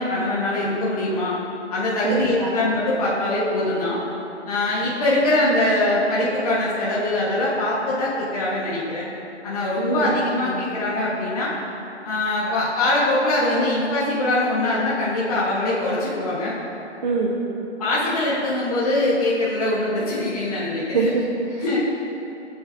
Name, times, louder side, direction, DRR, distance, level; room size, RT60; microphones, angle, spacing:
voice 1, 0.0-1.4 1.7-4.0 4.5-9.1 9.4-11.5 12.0-16.5 17.8-21.1 21.6-21.8, left 1 dB, 30° left, -8 dB, 1.4 m, -22 dB
voice 2, 2.0-2.5 9.8-10.6 17.0-17.3 20.9-21.8, right 4 dB, 40° right, -3 dB, 1.2 m, -25 dB
17.0 x 8.2 x 2.7 m, 3.0 s
hypercardioid pair, 165°, 35 cm